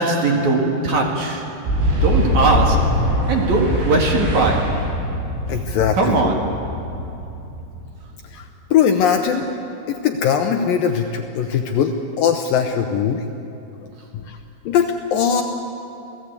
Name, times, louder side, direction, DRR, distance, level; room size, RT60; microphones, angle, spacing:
voice 1, 0.0-1.5 2.0-4.8 5.5-5.6 5.9-6.6, right 3 dB, 50° right, 1 dB, 2.8 m, -20 dB
Boom, 1.6-8.2, equal, 85° right, 8.7 m, -22 dB
voice 2, 5.5-6.4 8.3-9.5 9.9-13.2 14.1-14.4 14.7-15.4, left 7 dB, 75° left, 5 dB, 2.2 m, -20 dB
27.5 x 17.0 x 8.3 m, 2.8 s
omnidirectional pair, 4.8 m